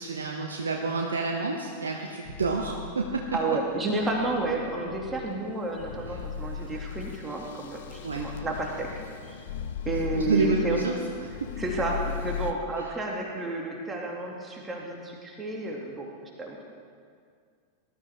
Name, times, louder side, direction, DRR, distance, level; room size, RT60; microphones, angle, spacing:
voice 1, 0.0-3.4 6.6-6.7 8.0-8.3 10.1-11.0 11.4-11.5 12.8-12.9, right 4 dB, 70° right, 1 dB, 1.0 m, -29 dB
sound 1, 2.2-12.5, left 7 dB, 55° left, 0.8 m, -38 dB
voice 2, 3.3-8.9 9.3-9.4 9.8-10.8 11.6-16.1 16.4-16.6, right 2 dB, 15° right, -1 dB, 2.4 m, -31 dB
19.5 x 13.0 x 3.6 m, 2.1 s
figure-of-eight pair, 90°, 0 cm